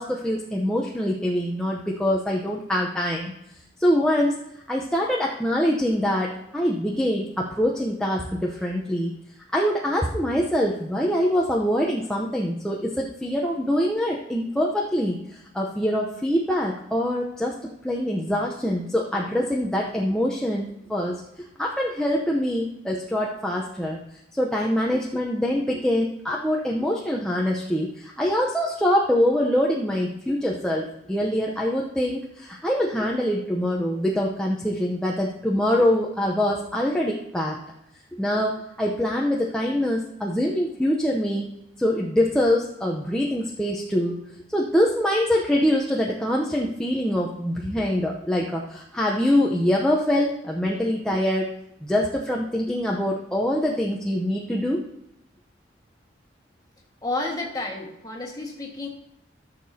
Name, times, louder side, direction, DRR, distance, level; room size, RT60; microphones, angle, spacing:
voice 1, 0.0-3.3 3.8-4.4 4.7-9.1 9.5-17.5 17.8-21.2 21.6-24.0 24.3-37.6 38.2-41.5 41.8-44.2 44.5-51.5 51.8-54.8, equal, 5° left, -3 dB, 0.7 m, -24 dB
voice 2, 57.0-58.9, left 2 dB, 20° left, -1 dB, 1.6 m, -31 dB
14.5 x 6.7 x 2.8 m, 0.84 s
head